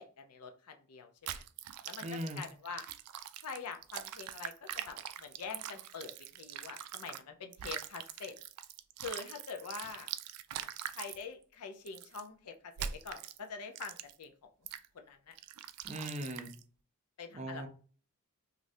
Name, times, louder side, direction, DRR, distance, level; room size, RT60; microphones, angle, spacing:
voice 1, 0.0-1.4 1.9-2.8 3.4-8.3 9.0-10.1 10.9-14.5 14.9-15.3 17.2-17.7, left 5 dB, 90° left, 0.6 m, -45 dB
sound 1, 1.3-7.2 7.5-11.2 11.9-12.2 12.8-13.4 13.8-14.2 14.7-14.9 15.4-16.6, right 10 dB, 85° right, 0.3 m, -43 dB
voice 2, 2.0-2.4 15.8-16.5 17.3-17.7, equal, 30° right, 0.5 m, -39 dB
3.2 x 2.5 x 2.6 m
head